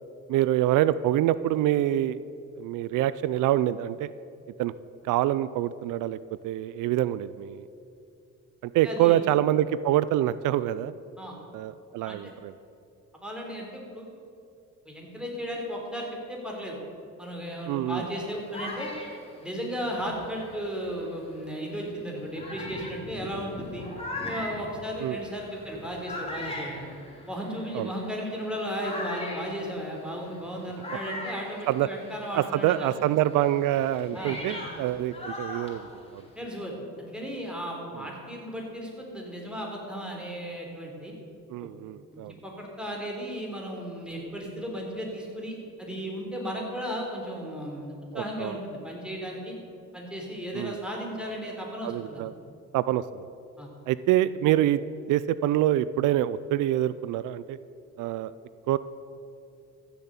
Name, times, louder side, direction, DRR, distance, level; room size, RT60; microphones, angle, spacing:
voice 1, 0.3-2.2 2.6-4.1 4.6-4.7 5.0-6.2 6.4-7.6 8.6-10.9 11.5-12.5 17.7-18.0 25.0-25.2 27.7-27.9 31.7-31.9 32.3-36.2 38.0-38.1 41.5-42.3 48.1-48.6 50.5-50.8 51.8-52.3 52.7-53.2 53.9-54.8 55.1-57.6 58.0-58.3 58.7-58.8, right 13 dB, 85° right, 16 dB, 0.5 m, -26 dB
voice 2, 8.8-9.2 11.2-11.3 12.1-12.2 13.2-14.1 14.9-16.8 17.2-18.9 19.4-23.9 24.2-26.8 27.3-32.9 34.1-34.4 36.4-41.1 41.6-41.7 42.1-49.6 49.9-52.2 53.6-53.7, equal, 5° right, -1 dB, 3.6 m, -35 dB
sound 1, 18.0-21.1 21.7-21.8 22.3-32.4 32.7-36.4, left 1 dB, 20° left, 3.2 m, -40 dB
14.5 x 7.1 x 8.2 m, 2.5 s
cardioid pair, 90°, 30 cm